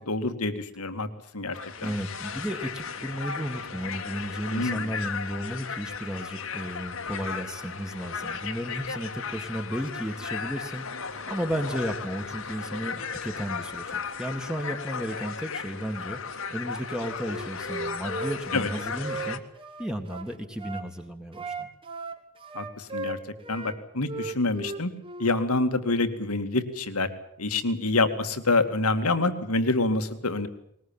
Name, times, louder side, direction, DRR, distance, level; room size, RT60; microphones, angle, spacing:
voice 1, 0.1-1.1 1.3-1.9 4.5-4.9 18.5-18.7 22.5-23.2 23.5-24.9 25.2-27.1 27.4-30.5, left 2 dB, 85° left, 9 dB, 2.4 m, -26 dB
sound 1, 1.5-19.4, left 5 dB, 65° left, 1.9 m, -36 dB
voice 2, 1.8-19.4 19.8-21.7, equal, 5° right, 4 dB, 2.0 m, -34 dB
Wind instrument woodwind instrument, 17.2-20.9 21.3-23.8 24.0-25.4, right 3 dB, 25° right, 1.9 m, -37 dB
21.0 x 21.0 x 9.0 m, 0.69 s
head